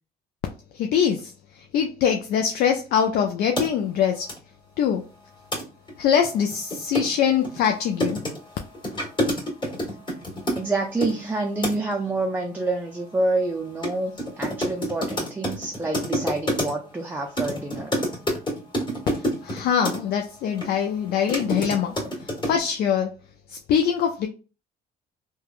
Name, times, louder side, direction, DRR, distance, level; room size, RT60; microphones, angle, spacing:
voice 1, 0.7-4.3 4.8-5.0 6.0-8.2 19.4-22.0 22.5-23.2 23.5-24.3, left 8 dB, 70° left, 0.4 m, -23 dB
laptop keyboard, 3.6-3.7 4.3-4.4 5.5-5.6 5.9-6.0 6.2-11.2 11.6-11.9 13.8-13.9 14.2-16.9 17.4-20.0 20.6-20.7 21.1-22.6, equal, 30° left, 1.5 m, -27 dB
voice 2, 10.5-17.9, right 2 dB, 10° right, 0.4 m, -27 dB
3.1 x 2.2 x 2.4 m
cardioid pair, 110°, 17 cm